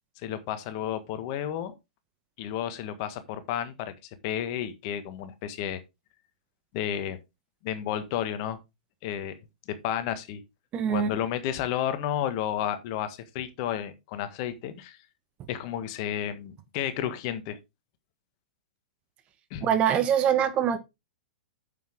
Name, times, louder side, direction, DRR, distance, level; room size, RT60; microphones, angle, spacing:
voice 1, 0.2-1.7 2.4-3.9 4.2-5.8 6.7-7.2 7.6-8.6 9.0-9.4 9.7-10.4 10.9-15.0 15.5-17.6 19.5-19.8, left 10 dB, 45° left, 1.6 m, -32 dB
voice 2, 10.7-11.1 19.6-20.8, right 9 dB, 30° right, 1.3 m, -23 dB
9.1 x 7.1 x 3.7 m
figure-of-eight pair, 105°, 4 cm